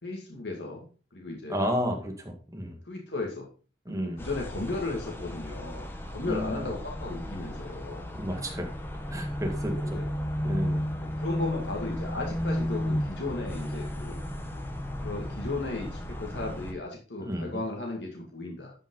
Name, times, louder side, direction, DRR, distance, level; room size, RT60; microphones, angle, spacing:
voice 1, 0.0-1.6 2.9-3.5 3.9-5.9 6.1-8.1 9.8-10.1 11.2-14.2 15.0-18.7, left 2 dB, 80° left, 0 dB, 2.1 m, -35 dB
voice 2, 1.5-2.8 3.8-4.2 6.2-6.7 8.1-8.7 9.1-10.0 10.4-10.8 17.2-17.6, equal, 20° right, 3 dB, 1.8 m, -32 dB
sound 1, 4.2-16.7, equal, 15° left, 1.2 m, -34 dB
11.5 x 5.4 x 3.9 m, 0.37 s
head